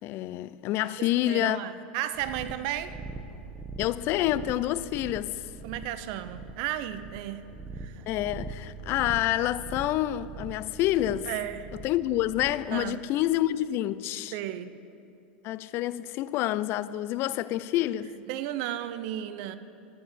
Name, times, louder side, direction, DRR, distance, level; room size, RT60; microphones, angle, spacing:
voice 1, 0.0-1.7 3.8-5.4 8.1-11.3 11.8-14.3 15.4-18.1, left 14 dB, 45° left, 0.4 m, -28 dB
voice 2, 1.0-3.0 5.6-7.5 7.7-8.0 11.3-11.7 12.7-13.0 14.3-14.8 18.3-19.6, right 12 dB, 60° right, 0.7 m, -34 dB
sound 1, 2.1-12.7, right 3 dB, 10° right, 1.0 m, -42 dB
11.5 x 9.1 x 7.5 m
hypercardioid pair, 105°, 5 cm